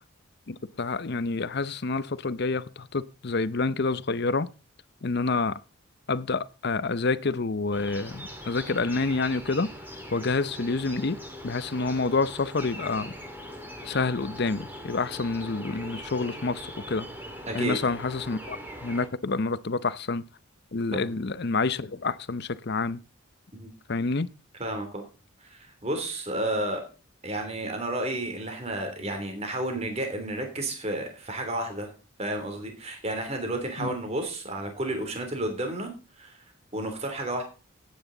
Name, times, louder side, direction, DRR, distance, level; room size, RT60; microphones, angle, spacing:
voice 1, 0.5-4.5 5.0-5.6 6.1-9.7 10.1-11.2 11.4-13.1 13.8-17.1 17.5-20.2 20.7-23.0 23.9-24.3 33.8-34.0, left 3 dB, 50° left, 0.7 m, -28 dB
sound 1, 7.7-19.1, equal, 10° right, 2.5 m, -41 dB
voice 2, 17.5-17.8 20.9-21.1 23.5-23.7 24.6-25.0 25.5-26.8 27.2-31.9 32.2-35.9 36.2-36.3 36.7-37.4, right 1 dB, 30° right, 3.0 m, -31 dB
15.0 x 9.4 x 3.9 m
head